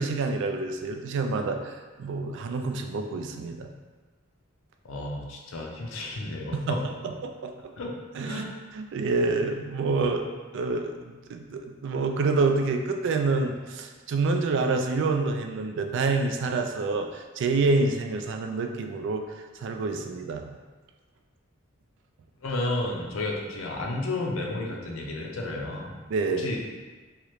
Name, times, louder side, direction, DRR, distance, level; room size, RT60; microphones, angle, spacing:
voice 1, 0.0-3.7 6.5-6.8 7.0-7.5 8.2-8.4 8.7-10.2 10.5-20.5 26.1-26.5, right 3 dB, 65° right, 5 dB, 0.3 m, -27 dB
voice 2, 4.8-6.8 7.8-7.9 8.2-8.6 10.0-10.1 22.4-25.9 26.4-26.6, left 2 dB, 80° left, 0 dB, 0.5 m, -32 dB
2.9 x 2.4 x 3.1 m, 1.3 s
head